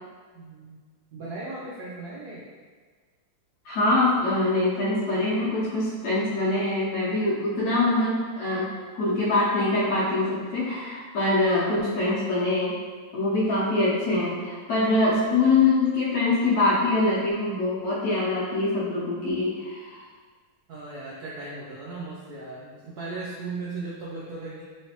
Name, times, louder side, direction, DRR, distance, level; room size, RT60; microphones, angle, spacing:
voice 1, 0.3-0.8 1.1-2.5 20.7-24.6, right 3 dB, 90° right, -6 dB, 0.8 m, -37 dB
voice 2, 3.6-12.8 13.1-20.0, left 2 dB, 65° left, -9 dB, 1.0 m, -24 dB
3.2 x 3.0 x 2.9 m, 1.5 s
omnidirectional pair, 2.3 m